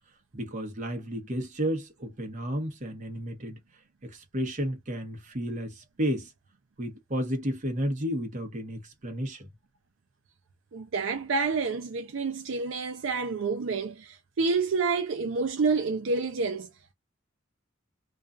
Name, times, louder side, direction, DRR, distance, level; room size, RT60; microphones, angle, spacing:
voice 1, 0.3-3.6 4.0-6.3 6.8-9.5, equal, 40° right, 0.9 m, -32 dB
voice 2, 10.7-16.7, right 4 dB, 70° right, 0.5 m, -28 dB
2.5 x 2.3 x 2.4 m
head